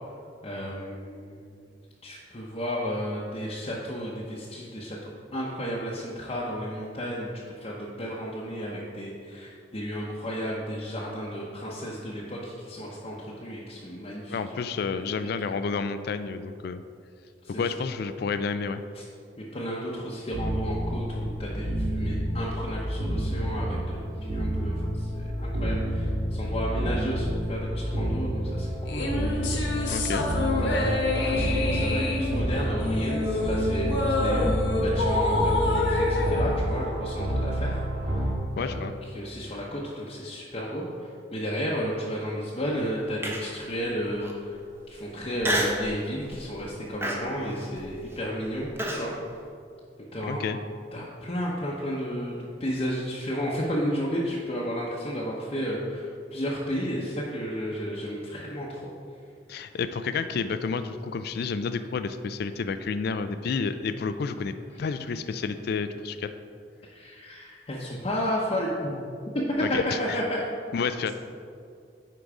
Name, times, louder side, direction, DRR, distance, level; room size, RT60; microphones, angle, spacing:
voice 1, 0.4-1.6 2.0-7.3 7.6-14.6 15.1-15.3 17.4-17.6 18.9-19.0 19.5-29.5 29.8-30.0 30.6-37.8 38.1-38.3 38.6-44.6 44.9-49.1 50.1-50.6 50.9-58.8 64.7-64.9 66.9-69.0 69.5-70.4, equal, 30° left, -5 dB, 0.8 m, -33 dB
voice 2, 14.3-16.8 17.5-18.8 29.9-30.3 38.6-38.9 50.3-50.6 59.5-66.3 69.6-70.2 70.7-71.1, left 5 dB, 60° left, 11 dB, 0.3 m, -30 dB
sound 1, 20.3-38.3, equal, 65° right, 1.7 m, -29 dB
sound 2, 28.9-37.5, left 2 dB, 75° left, 1.1 m, -27 dB
Human voice, 43.2-43.7 44.2-44.3 45.4-45.9 46.3-46.6 47.0-49.1, equal, 15° right, 0.8 m, -29 dB
10.0 x 3.9 x 4.8 m, 2.4 s
head